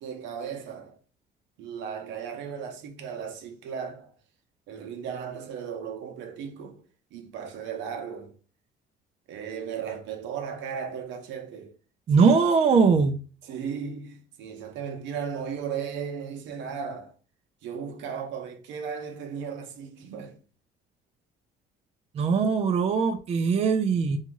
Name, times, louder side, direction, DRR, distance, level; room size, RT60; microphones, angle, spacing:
voice 1, 0.0-1.0 1.6-4.1 4.7-6.8 7.1-8.3 9.3-11.7 12.2-12.3 13.4-17.1 17.6-20.4, right 7 dB, 75° right, 0.7 m, -36 dB
voice 2, 12.1-13.2 22.2-24.2, right 5 dB, 35° right, 0.4 m, -21 dB
2.7 x 2.3 x 3.0 m
cardioid pair, 100°, 19 cm